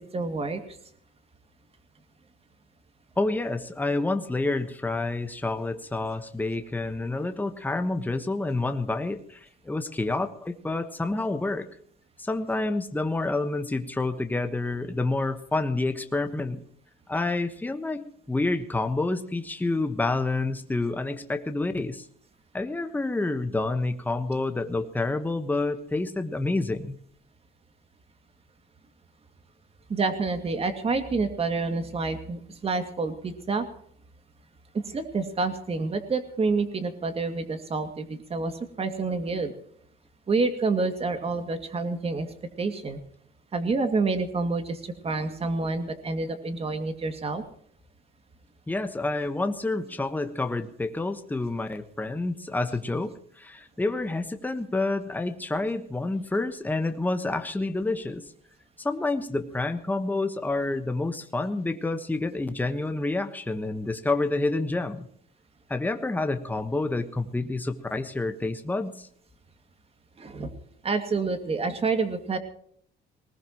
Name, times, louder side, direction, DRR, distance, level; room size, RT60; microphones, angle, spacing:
voice 1, 0.1-0.6 29.9-33.7 34.7-39.5 40.3-42.3 42.6-43.0 43.5-47.4 70.2-70.5 70.8-72.4, right 3 dB, 35° right, 8 dB, 2.3 m, -28 dB
voice 2, 3.2-11.7 12.2-16.6 17.1-22.1 22.5-27.0 48.7-58.3 58.8-65.1 65.7-69.1, left 2 dB, 10° left, 7 dB, 1.3 m, -28 dB
20.0 x 19.5 x 3.0 m, 0.63 s
cardioid pair, 135°, 18 cm